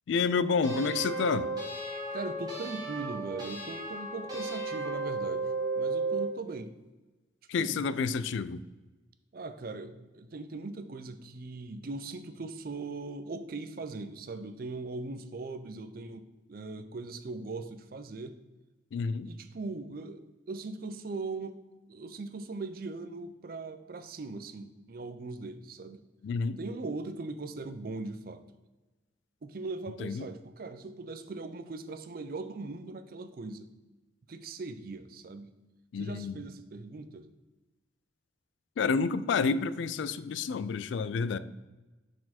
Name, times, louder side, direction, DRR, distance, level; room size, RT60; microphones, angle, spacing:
voice 1, 0.1-1.5 7.5-8.6 18.9-19.3 26.2-26.6 30.0-30.3 35.9-36.4 38.8-41.4, left 5 dB, 70° left, 15 dB, 0.3 m, -29 dB
sound 1, 0.6-6.3, right 3 dB, 20° right, 1.7 m, -34 dB
voice 2, 2.1-6.7 7.6-7.8 9.3-18.4 19.2-21.6 21.9-26.0 26.6-28.4 29.4-33.7 34.3-35.5 36.0-37.3, right 3 dB, 50° right, 11 dB, 0.4 m, -40 dB
6.2 x 4.4 x 4.2 m, 1.1 s
head